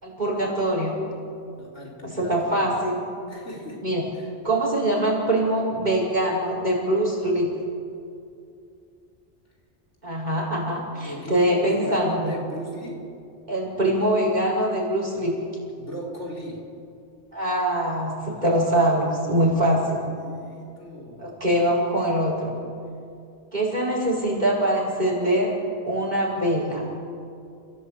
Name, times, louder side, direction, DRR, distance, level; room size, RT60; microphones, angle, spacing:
voice 1, 0.0-1.0 2.0-3.0 3.8-4.0 4.4-7.5 10.0-12.3 13.5-15.4 17.3-20.0 21.2-22.6 23.5-25.5 25.9-26.9, right 1 dB, 40° right, -3 dB, 6.4 m, -23 dB
voice 2, 1.6-2.8 3.3-3.8 4.1-4.3 11.0-13.0 15.8-16.6 18.3-18.6 20.2-21.2, left 1 dB, 90° left, -2 dB, 4.7 m, -36 dB
29.0 x 17.0 x 8.8 m, 2.5 s
omnidirectional pair, 1.2 m